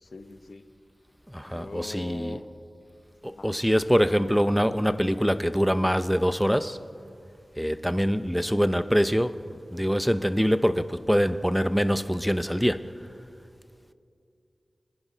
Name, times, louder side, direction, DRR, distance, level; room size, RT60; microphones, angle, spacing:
voice 1, 0.0-0.7 1.4-2.4 3.2-3.5, left 3 dB, 65° left, 1.0 m, -41 dB
voice 2, 1.3-2.4 3.2-6.8 7.6-12.9, equal, ahead, 0.6 m, -24 dB
26.0 x 10.0 x 5.1 m
wide cardioid pair, 55°, 0 cm